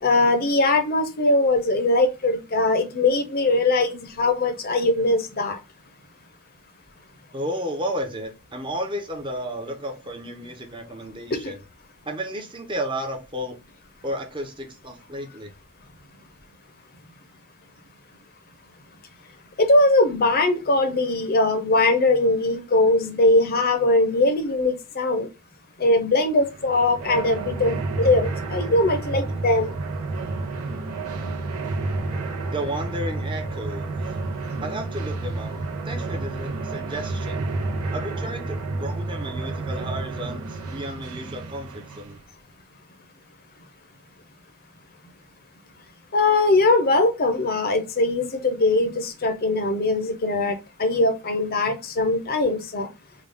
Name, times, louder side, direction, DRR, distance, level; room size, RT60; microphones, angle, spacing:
voice 1, 0.0-5.6 19.6-25.3 25.8-29.7 46.1-52.9, left 2 dB, 45° left, 0.7 m, -21 dB
voice 2, 7.3-11.6 12.0-13.6 14.0-15.5 32.5-34.0 34.6-35.5 35.8-37.4 37.9-42.2, right 1 dB, 20° right, 0.7 m, -32 dB
sound 1, 26.4-42.2, right 3 dB, 85° right, 0.7 m, -30 dB
3.8 x 2.3 x 3.4 m
head